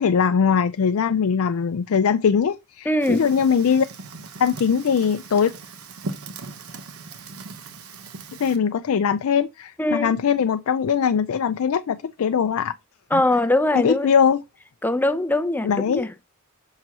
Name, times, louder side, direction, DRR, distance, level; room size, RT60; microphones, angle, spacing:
voice 1, 0.0-3.9 4.4-5.5 8.4-12.7 13.1-13.2 13.7-14.4 15.6-16.1, left 7 dB, 75° left, 0.4 m, -21 dB
voice 2, 2.9-3.3 9.8-10.1 13.1-14.1 14.8-16.1, left 1 dB, 10° left, 0.5 m, -22 dB
Fire, 3.0-8.6, right 3 dB, 80° right, 1.0 m, -39 dB
6.4 x 6.0 x 2.8 m
head